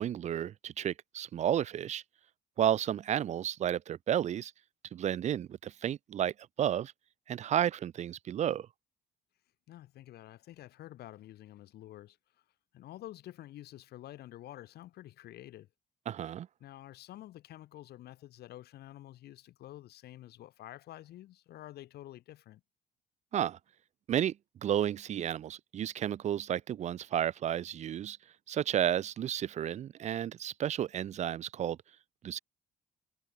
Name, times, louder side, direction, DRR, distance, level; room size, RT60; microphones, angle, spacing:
voice 1, 0.0-2.0 2.6-4.5 4.9-6.9 7.3-8.7 16.1-16.5 23.3-23.6 24.1-24.3 24.6-28.2 28.5-31.8 32.2-32.4, right 10 dB, 45° right, 0.5 m, -32 dB
voice 2, 9.7-12.4 12.7-15.7 16.6-22.6, left 14 dB, 70° left, 5.3 m, -49 dB
cardioid pair, 110°, 17 cm